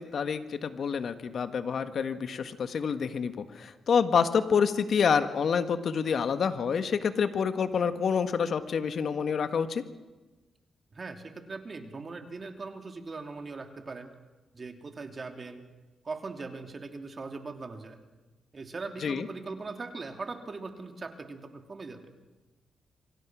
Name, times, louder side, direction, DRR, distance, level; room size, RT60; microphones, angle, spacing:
voice 1, 0.0-9.8 19.0-19.3, left 6 dB, 65° left, 9 dB, 1.6 m, -27 dB
voice 2, 10.9-14.1 14.5-15.7 16.0-18.0 18.5-22.1, right 3 dB, 40° right, 5 dB, 3.0 m, -40 dB
27.5 x 24.5 x 6.2 m, 1.2 s
cardioid pair, 70°, 0 cm